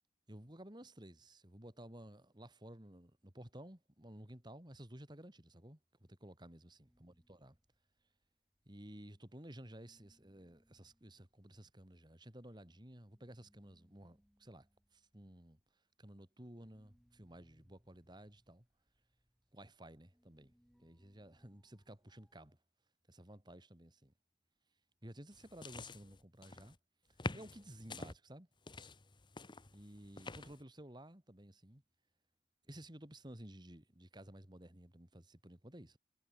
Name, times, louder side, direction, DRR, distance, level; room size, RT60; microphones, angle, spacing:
voice 1, 0.3-7.6 8.7-14.7 14.9-15.6 16.0-18.7 19.5-20.5 20.8-22.6 23.1-24.1 25.0-26.8 27.3-28.5 29.7-31.8 32.7-36.0, right 1 dB, 25° right, 2.8 m, -54 dB
sound 1, 6.8-9.2 9.5-22.6, equal, ahead, 3.8 m, -75 dB
sound 2, 25.3-26.8 27.2-28.1 28.7-30.6, left 2 dB, 25° left, 1.1 m, -47 dB
head